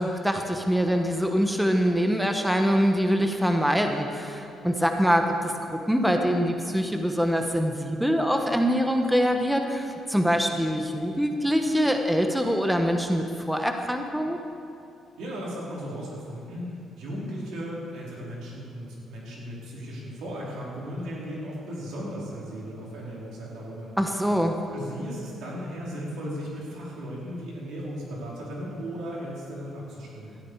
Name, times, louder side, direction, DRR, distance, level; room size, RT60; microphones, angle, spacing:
voice 1, 0.0-14.4 24.0-24.5, equal, 5° right, 4 dB, 1.2 m, -24 dB
voice 2, 15.2-23.9 24.7-30.3, equal, 85° right, -4 dB, 4.4 m, -36 dB
17.5 x 13.0 x 4.9 m, 2.6 s
cardioid pair, 90°, 0 cm